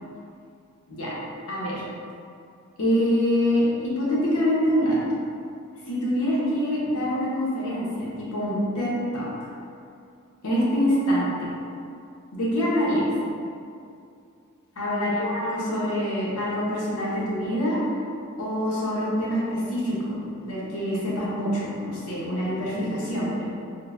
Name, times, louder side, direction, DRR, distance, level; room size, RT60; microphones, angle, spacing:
voice 1, 1.5-1.8 2.8-5.0 5.9-9.5 10.4-11.6 12.3-13.1 14.8-17.8 18.4-23.4, equal, 80° left, -6 dB, 0.8 m, -25 dB
3.7 x 2.6 x 2.3 m, 2.5 s
head